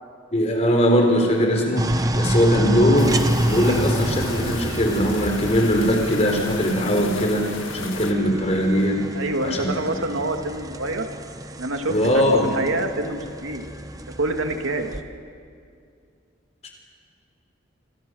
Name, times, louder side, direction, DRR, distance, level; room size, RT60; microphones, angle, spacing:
voice 1, 0.3-3.2 3.4-9.1 9.4-9.7 11.9-12.5 16.6-16.7, equal, 35° left, 2 dB, 4.2 m, -20 dB
sound 1, 1.8-15.0, right 1 dB, 15° right, 1.0 m, -28 dB
sound 2, 3.0-8.1, left 5 dB, 75° left, 1.7 m, -35 dB
voice 2, 9.1-11.1 11.6-11.9 12.5-13.6 14.2-14.9, right 2 dB, 85° right, 4 dB, 2.3 m, -26 dB
27.0 x 26.5 x 6.4 m, 2.3 s
head